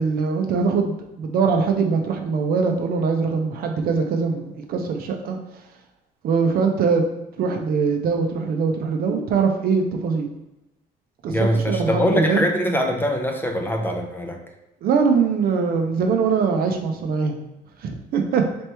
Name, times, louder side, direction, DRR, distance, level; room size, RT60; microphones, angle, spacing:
voice 1, 0.0-5.4 6.2-7.0 7.4-10.3 11.2-12.4 14.8-17.4 17.8-18.4, right 5 dB, 60° right, 4 dB, 0.6 m, -22 dB
voice 2, 11.3-14.4, equal, 10° left, 3 dB, 0.6 m, -23 dB
4.2 x 2.9 x 3.4 m, 0.95 s
cardioid pair, 110°, 17 cm